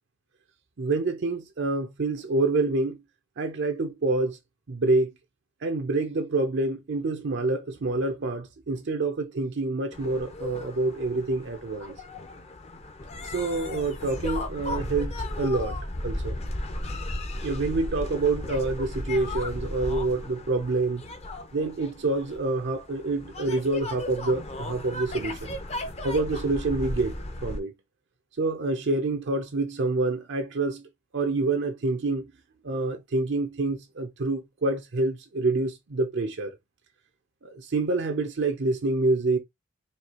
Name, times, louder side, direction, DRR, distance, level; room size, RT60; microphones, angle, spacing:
voice 1, 0.8-3.0 3.4-4.4 4.7-5.1 5.6-11.9 13.2-15.8 16.0-16.4 17.4-21.0 21.5-25.5 26.0-27.7 28.4-30.8 31.1-32.3 32.6-36.5 37.4-39.4, right 3 dB, 60° right, 0.6 m, -27 dB
sound 1, 9.9-27.6, left 1 dB, 30° left, 0.7 m, -35 dB
4.5 x 2.8 x 2.8 m
head